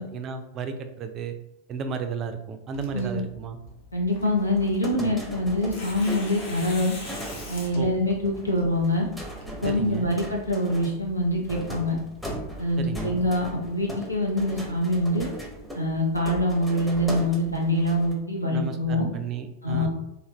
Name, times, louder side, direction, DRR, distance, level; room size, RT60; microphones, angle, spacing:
voice 1, 0.0-1.3 1.7-3.6 7.7-7.9 9.6-10.1 12.8-13.2 18.5-19.9, right 6 dB, 30° right, 8 dB, 0.3 m, -33 dB
Tearing, 2.7-10.5, left 2 dB, 50° left, 0.8 m, -44 dB
voice 2, 3.9-6.9 7.5-9.1 9.6-12.0 12.6-15.3 15.7-19.1 19.6-19.9, left 1 dB, 85° left, -1 dB, 0.7 m, -25 dB
sound 1, 4.4-18.1, equal, ahead, 0.7 m, -39 dB
2.7 x 2.5 x 3.0 m, 0.93 s
figure-of-eight pair, 90°, 0 cm